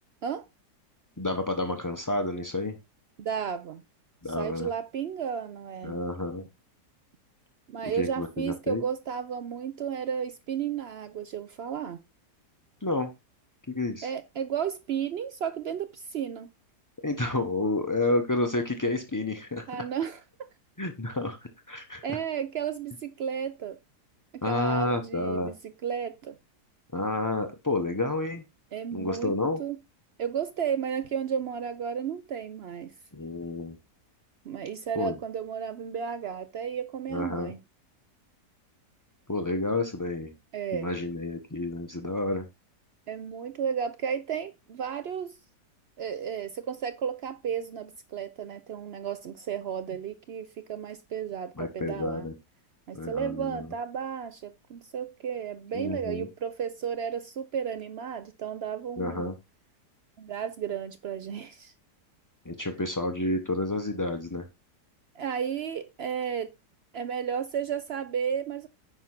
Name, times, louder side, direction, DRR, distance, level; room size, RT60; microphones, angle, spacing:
voice 1, 1.2-2.8 4.2-4.7 5.8-6.4 7.8-8.8 12.8-13.1 13.7-14.1 17.0-19.7 20.8-21.4 21.7-22.2 24.4-25.5 26.9-28.4 28.9-29.6 33.1-33.8 35.0-35.2 37.1-37.5 39.3-40.3 40.7-42.4 51.6-52.3 52.9-53.7 55.7-56.3 59.0-59.3 62.4-64.5, left 2 dB, 25° left, 0.4 m, -30 dB
voice 2, 3.2-3.8 4.3-6.0 7.7-12.0 14.0-16.5 19.7-20.5 22.0-23.8 24.3-25.6 25.8-26.4 28.7-29.3 29.6-29.8 30.2-32.9 34.4-37.6 40.5-40.9 43.1-45.4 46.0-52.3 52.9-59.3 60.2-61.7 65.1-66.5 66.9-68.7, right 8 dB, 85° right, 0.5 m, -33 dB
9.5 x 3.6 x 5.9 m
omnidirectional pair, 1.8 m